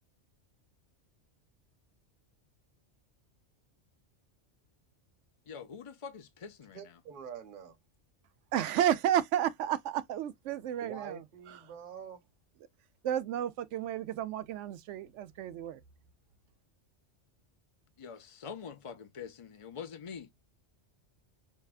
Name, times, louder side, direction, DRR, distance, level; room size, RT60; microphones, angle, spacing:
voice 1, 5.4-7.0 18.0-20.3, left 6 dB, 50° left, 0.4 m, -45 dB
voice 2, 6.7-7.8 10.8-12.3, right 7 dB, 50° right, 1.0 m, -45 dB
voice 3, 8.5-11.2 13.0-15.8, right 11 dB, 85° right, 0.9 m, -31 dB
5.5 x 2.2 x 2.3 m
omnidirectional pair, 1.2 m